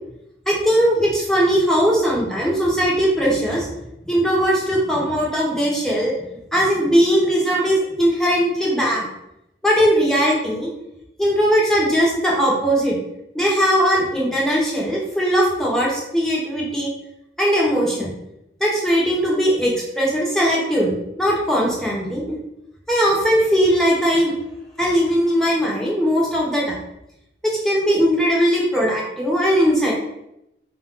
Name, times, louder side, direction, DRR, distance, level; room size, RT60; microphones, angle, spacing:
voice 1, 0.5-3.7 4.1-6.1 6.5-9.0 9.6-10.7 11.2-13.0 13.3-16.9 17.4-18.1 18.6-22.4 22.9-24.3 24.8-26.7 27.6-29.9, equal, 5° left, -5 dB, 0.9 m, -19 dB
4.9 x 2.4 x 3.7 m, 0.84 s
head